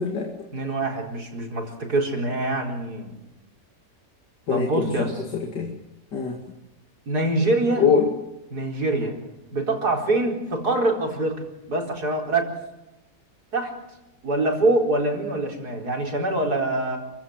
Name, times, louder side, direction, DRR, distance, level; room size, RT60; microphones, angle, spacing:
voice 1, 0.0-0.5 4.5-5.7 6.1-6.4 7.8-8.1, left 6 dB, 85° left, 2 dB, 3.0 m, -24 dB
voice 2, 0.5-3.2 4.5-5.1 7.1-7.9 8.5-9.2 9.5-12.5 13.5-13.7 14.2-17.0, right 2 dB, 65° right, 2 dB, 5.0 m, -24 dB
29.5 x 15.5 x 7.8 m, 0.93 s
omnidirectional pair, 1.8 m